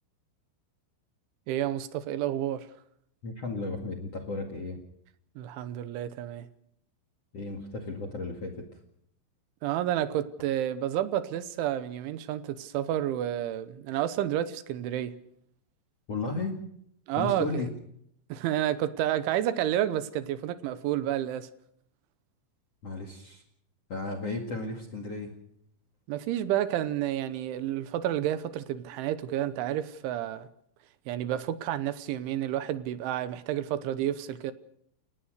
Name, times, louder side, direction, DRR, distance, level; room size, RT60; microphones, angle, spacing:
voice 1, 1.5-2.7 5.4-6.5 9.6-15.2 17.1-17.6 18.3-21.5 26.1-30.5 31.1-34.5, right 12 dB, 75° right, 3.2 m, -30 dB
voice 2, 3.2-4.8 7.3-8.8 16.1-16.6 17.1-17.7 22.8-23.4 23.9-25.3, left 3 dB, 45° left, 2.1 m, -34 dB
29.5 x 15.5 x 6.6 m
omnidirectional pair, 5.8 m